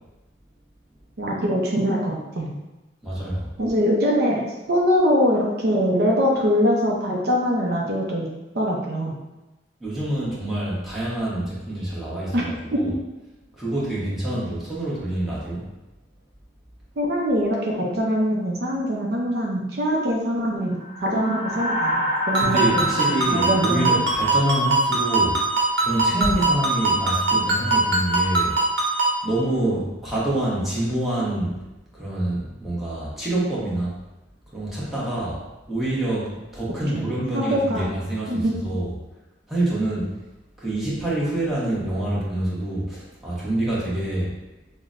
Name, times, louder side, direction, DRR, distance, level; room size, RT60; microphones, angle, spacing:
voice 1, 1.2-2.6 3.6-4.4 4.7-8.3 8.5-9.2 12.3-12.4 12.7-12.8 17.0-22.8 23.3-24.0 36.9-37.1 37.3-37.9 38.3-38.6, equal, 60° right, -1 dB, 0.5 m, -23 dB
voice 2, 3.0-3.5 9.8-12.9 13.5-15.6 22.4-25.4 25.8-28.6 29.2-31.6 31.9-34.0 34.5-35.4 35.7-38.9 39.5-40.1 40.6-44.3, right 1 dB, ahead, -9 dB, 1.0 m, -26 dB
sound 1, 20.8-25.3, equal, 20° right, 1.4 m, -29 dB
Ringtone, 22.3-29.2, right 2 dB, 80° right, 0.9 m, -22 dB
5.7 x 2.1 x 2.5 m, 1.0 s
head